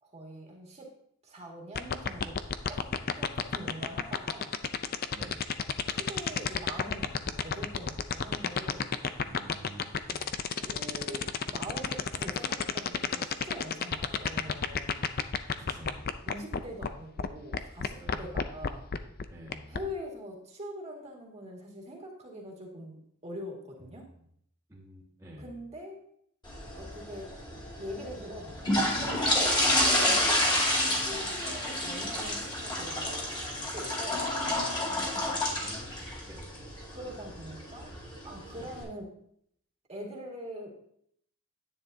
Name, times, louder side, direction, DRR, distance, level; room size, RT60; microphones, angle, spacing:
voice 1, 0.0-0.9 1.2-2.4 2.7-2.9 3.2-4.5 5.9-8.9 10.6-15.0 16.2-18.9 19.7-24.1 25.4-26.0 26.8-27.4 27.8-29.0 29.6-30.5 30.9-34.8 36.9-37.9 38.2-39.1 39.9-40.7, equal, 30° right, -1 dB, 2.0 m, -43 dB
sound 1, 1.8-16.9 17.2-17.3 17.5-19.8, left 6 dB, 45° left, 0.5 m, -29 dB
voice 2, 5.1-5.5 9.2-10.4 15.7-16.1 18.0-18.3 19.3-19.8 24.7-25.5 29.6-29.8 35.2-35.9 36.3-36.5 38.6-38.7, right 1 dB, 15° right, -6 dB, 1.7 m, -48 dB
sound 2, 26.4-38.8, left 1 dB, 20° left, 2.5 m, -30 dB
10.5 x 9.1 x 2.7 m, 0.68 s
head